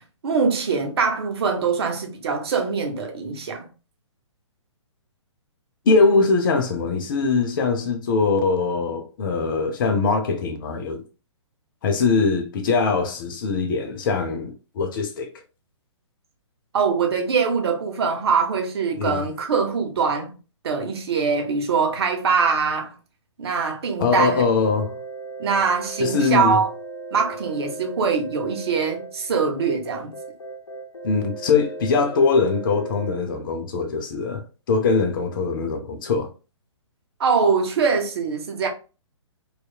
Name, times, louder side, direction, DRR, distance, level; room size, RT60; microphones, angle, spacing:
voice 1, 0.0-3.7 16.7-20.3 20.6-22.9 23.4-24.4 25.4-26.7 27.1-30.2 37.2-38.7, right 5 dB, 55° right, 0.7 m, -23 dB
voice 2, 5.9-11.0 11.8-15.3 19.0-19.2 24.0-25.0 26.0-26.6 31.0-36.3, left 4 dB, 40° left, 0.6 m, -22 dB
sound 1, 24.4-33.1, right 3 dB, 75° left, 0.8 m, -37 dB
2.8 x 2.4 x 2.2 m
figure-of-eight pair, 125°, 16 cm